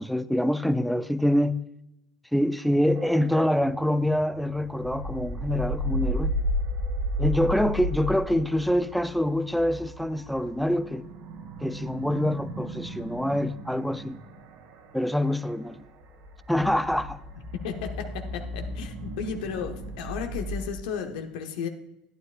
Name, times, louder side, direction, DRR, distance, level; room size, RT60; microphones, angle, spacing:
voice 1, 0.0-1.6 2.3-6.4 7.2-11.1 11.6-14.2 14.9-15.9 16.5-17.2, left 1 dB, ahead, 0.4 m, -25 dB
sound 1, 2.9-20.7, equal, 60° right, 1.5 m, -34 dB
voice 2, 17.6-21.7, left 6 dB, 80° left, 0.9 m, -34 dB
11.5 x 9.5 x 2.4 m
hypercardioid pair, 95°, 4 cm